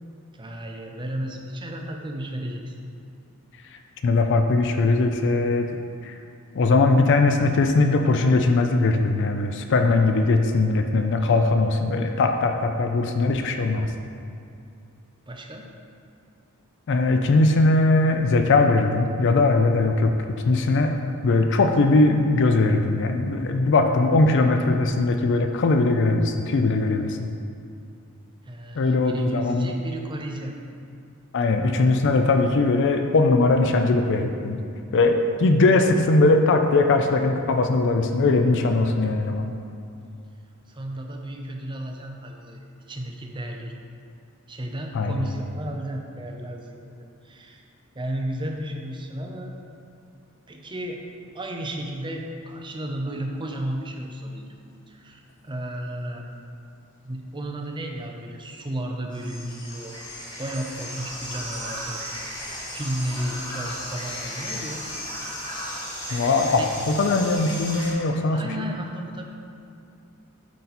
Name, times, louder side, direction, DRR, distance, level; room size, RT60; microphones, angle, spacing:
voice 1, 0.3-2.8 11.2-11.3 15.3-15.7 28.5-30.6 40.7-43.7 44.5-46.9 47.2-47.6 47.9-49.6 50.5-51.1 51.3-54.5 54.9-56.3 57.0-62.0 62.7-64.9 66.6-66.7 68.3-69.3, right 1 dB, 20° right, 2 dB, 0.6 m, -33 dB
voice 2, 4.0-5.7 6.0-6.2 6.5-13.9 16.9-20.1 20.5-20.9 21.2-27.3 28.7-29.7 31.3-34.6 34.9-39.5 44.9-45.3 66.1-68.4, left 3 dB, 55° left, 5 dB, 0.4 m, -20 dB
sound 1, 59.1-67.9, left 1 dB, 20° left, 1.3 m, -35 dB
8.4 x 4.0 x 4.1 m, 2.5 s
head